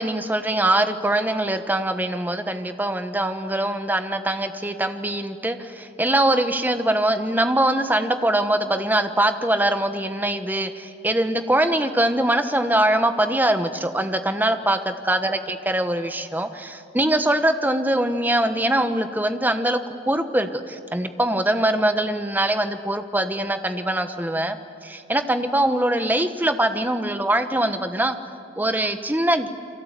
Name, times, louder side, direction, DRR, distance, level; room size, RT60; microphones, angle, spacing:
voice 1, 0.0-28.2 28.6-29.5, right 1 dB, 10° right, 8 dB, 1.2 m, -23 dB
29.5 x 23.5 x 8.3 m, 2.7 s
head